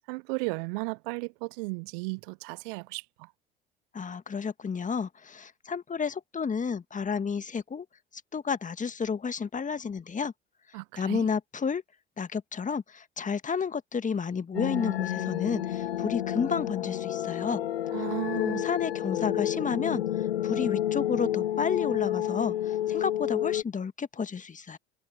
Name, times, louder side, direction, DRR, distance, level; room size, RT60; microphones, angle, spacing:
voice 1, 0.1-3.3 10.7-11.3 17.9-18.7, right 30 dB, 60° right, 0.6 m, -35 dB
voice 2, 3.9-7.9 8.3-10.3 11.0-11.8 12.2-17.6 18.4-20.0 20.4-24.8, left 6 dB, 25° left, 1.9 m, -31 dB
sound 1, 14.5-23.6, left 12 dB, 85° left, 0.6 m, -30 dB
figure-of-eight pair, 65°, 30 cm